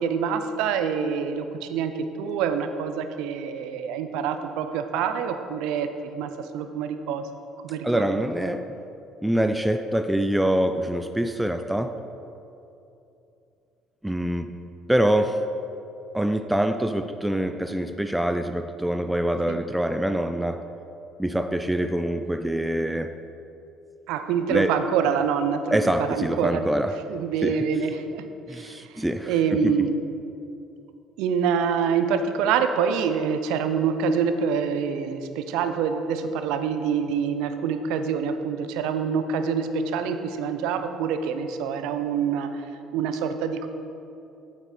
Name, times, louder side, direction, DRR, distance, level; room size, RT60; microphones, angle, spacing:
voice 1, 0.0-7.3 7.6-8.1 19.5-19.6 24.1-26.7 27.1-30.0 31.2-42.6 42.9-43.7, right 6 dB, 70° right, 8 dB, 0.6 m, -26 dB
voice 2, 7.8-8.7 9.2-12.0 14.0-14.5 14.9-15.4 16.1-20.6 21.2-23.1 24.5-24.7 25.7-26.9 27.4-27.6 28.5-29.3 29.6-29.7, right 1 dB, 5° right, 8 dB, 0.5 m, -25 dB
8.8 x 8.0 x 4.4 m, 2.8 s
hypercardioid pair, 55°, 0 cm